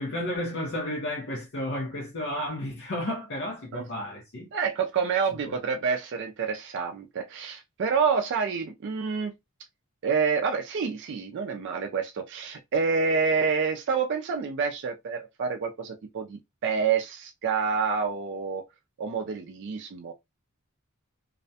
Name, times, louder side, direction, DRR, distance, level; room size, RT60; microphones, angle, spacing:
voice 1, 0.0-4.5 5.4-5.6, left 1 dB, 60° left, 0.7 m, -32 dB
voice 2, 4.5-9.3 10.0-18.6 19.0-20.1, right 5 dB, 55° right, 0.4 m, -28 dB
2.4 x 2.1 x 2.6 m
head